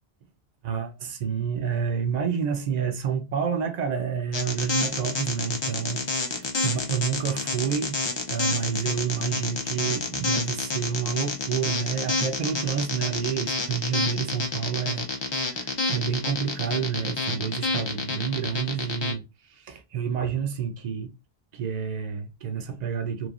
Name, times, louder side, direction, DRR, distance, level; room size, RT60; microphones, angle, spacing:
voice 1, 0.6-8.0 8.3-19.2 19.5-21.1 21.5-23.3, right 7 dB, 50° right, 0.6 m, -29 dB
sound 1, 4.3-19.1, left 3 dB, 40° left, 0.4 m, -28 dB
3.1 x 2.2 x 2.4 m
omnidirectional pair, 1.0 m